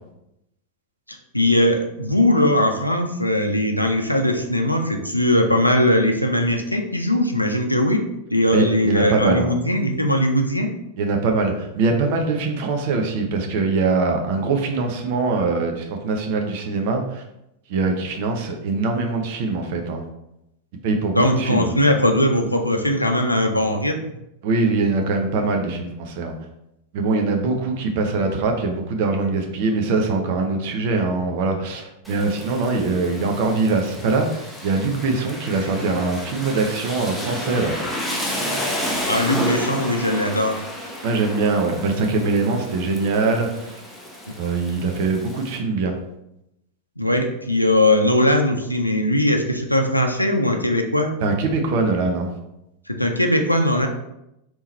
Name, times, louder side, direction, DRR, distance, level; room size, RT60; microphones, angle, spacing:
voice 1, 1.1-8.0 8.3-10.7 21.1-24.0 39.1-40.6 47.0-51.1 52.9-53.9, left 1 dB, 85° left, 4 dB, 0.6 m, -20 dB
voice 2, 8.5-9.5 11.0-17.2 17.7-20.0 20.8-21.7 24.4-26.3 26.9-37.7 41.0-43.8 44.4-46.0 51.2-52.3, right 3 dB, 50° right, 3 dB, 0.7 m, -22 dB
Rain, 32.0-45.6, equal, ahead, 0.8 m, -31 dB
3.7 x 3.0 x 4.2 m, 0.85 s
figure-of-eight pair, 90°, 0 cm